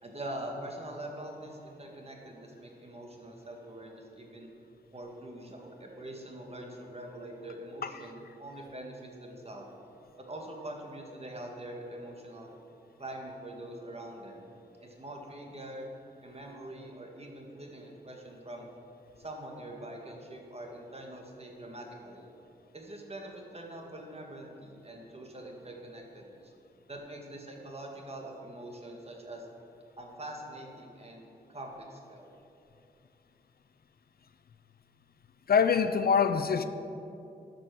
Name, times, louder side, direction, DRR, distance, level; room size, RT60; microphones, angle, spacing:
voice 1, 0.0-4.5 4.9-9.7 10.2-12.5 13.0-14.5 14.8-15.9 16.2-18.7 19.2-22.3 22.7-26.5 26.9-29.5 30.0-32.3, right 1 dB, 35° right, 1 dB, 1.8 m, -44 dB
voice 2, 35.5-36.6, left 6 dB, 65° left, 10 dB, 0.5 m, -24 dB
12.5 x 6.1 x 6.1 m, 2.7 s
cardioid pair, 65°, 17 cm